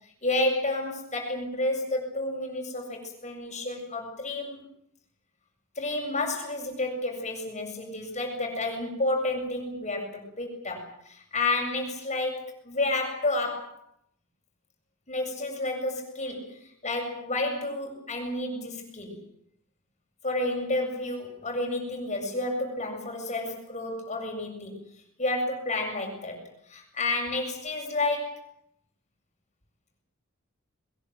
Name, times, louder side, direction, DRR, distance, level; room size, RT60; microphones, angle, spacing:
voice 1, 0.2-4.6 5.8-13.8 15.1-19.2 20.2-24.8 25.2-28.5, left 2 dB, 35° left, 2 dB, 7.5 m, -30 dB
22.5 x 21.0 x 9.3 m, 0.70 s
head